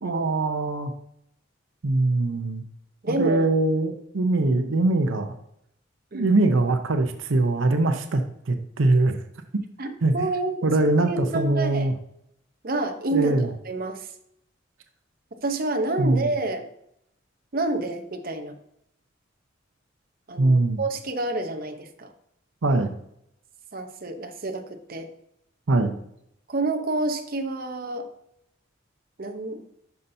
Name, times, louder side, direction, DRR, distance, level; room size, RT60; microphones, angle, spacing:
voice 1, 0.0-0.9 1.8-2.6 3.1-5.3 6.1-8.2 8.5-9.2 10.0-10.1 10.6-11.9 13.1-13.5 16.0-16.2 20.4-20.8 22.6-22.9 25.7-26.0, right 2 dB, 80° right, 7 dB, 0.7 m, -22 dB
voice 2, 3.0-3.4 6.1-6.3 9.8-10.6 11.1-11.9 12.6-14.1 15.4-16.7 17.5-18.6 20.3-22.1 23.7-25.1 26.5-28.1 29.2-29.7, right 2 dB, 50° right, 6 dB, 0.8 m, -28 dB
11.0 x 5.7 x 2.7 m, 0.76 s
head